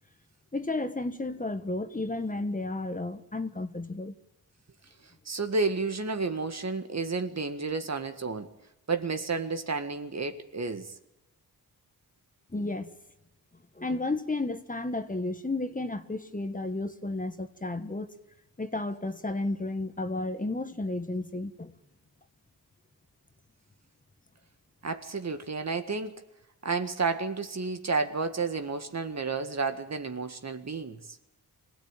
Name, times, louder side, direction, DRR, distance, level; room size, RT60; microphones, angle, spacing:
voice 1, 0.5-4.1 12.5-12.9 13.7-18.1 18.6-21.7, left 2 dB, 20° left, 1.6 m, -32 dB
voice 2, 5.3-8.5 8.9-10.9 24.8-26.1 26.6-31.0, right 4 dB, 45° right, 1.9 m, -31 dB
25.5 x 16.5 x 9.1 m
cardioid pair, 85°, 38 cm